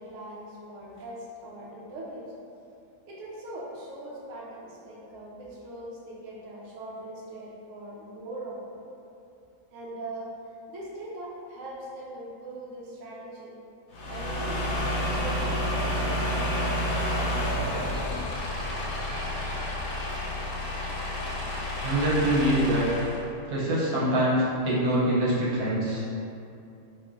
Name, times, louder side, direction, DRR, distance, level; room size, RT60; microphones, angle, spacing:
voice 1, 0.0-2.3 3.1-8.8 9.7-10.3 10.7-13.5 14.1-18.1 20.0-20.1, right 1 dB, 70° right, -6 dB, 0.9 m, -41 dB
sound 1, 13.9-23.2, left 1 dB, 75° left, 1.0 m, -30 dB
voice 2, 21.8-22.9 23.5-26.0, right 1 dB, 85° right, -7 dB, 1.2 m, -24 dB
3.0 x 2.5 x 2.3 m, 2.6 s
omnidirectional pair, 1.6 m